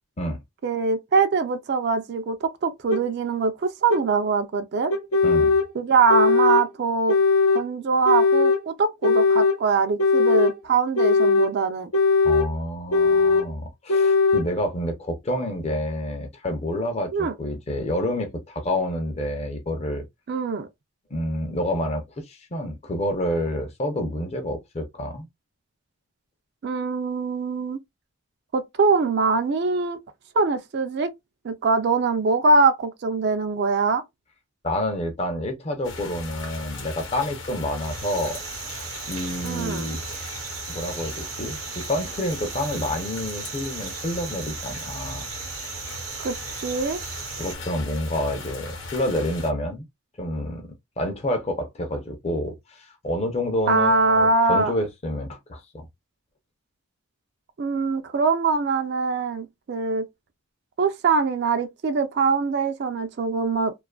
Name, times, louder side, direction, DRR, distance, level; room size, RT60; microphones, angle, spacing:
voice 1, 0.6-4.9 5.7-7.2 7.5-11.9 17.1-17.3 20.3-20.7 26.6-27.8 28.5-30.0 30.3-31.1 31.4-34.0 39.4-39.9 46.2-46.3 46.6-47.0 53.7-54.7 57.6-60.1 60.8-63.7, right 4 dB, 50° right, 0.4 m, -23 dB
sound 1, 2.9-3.0 3.9-4.0 4.9-5.7 6.1-6.7 7.1-7.6 8.1-8.6 9.0-9.6 10.0-10.6 11.0-11.5 11.9-12.5 12.9-13.5 13.9-14.5, left 4 dB, 85° left, 0.5 m, -19 dB
voice 2, 12.2-20.0 21.1-25.3 34.6-38.4 39.1-40.0 40.7-45.2 47.4-49.9 50.2-50.6 51.0-55.9, left 1 dB, 30° left, 0.5 m, -28 dB
sound 2, 35.8-49.5, left 3 dB, 60° left, 0.8 m, -38 dB
sound 3, 37.8-47.6, right 7 dB, 85° right, 0.8 m, -37 dB
2.5 x 2.3 x 2.2 m
head